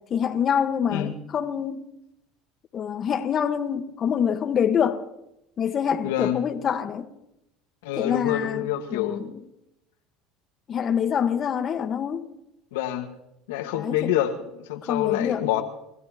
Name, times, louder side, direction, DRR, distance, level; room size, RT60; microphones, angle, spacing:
voice 1, 0.1-1.9 2.7-5.0 5.6-7.1 8.0-9.4 10.7-12.2 13.7-14.1 14.8-15.5, left 8 dB, 45° left, 1.4 m, -26 dB
voice 2, 6.0-6.4 7.8-9.2 12.7-13.1 13.5-15.6, left 12 dB, 85° left, 1.6 m, -27 dB
30.0 x 15.0 x 3.0 m
supercardioid pair, 90°, 0 cm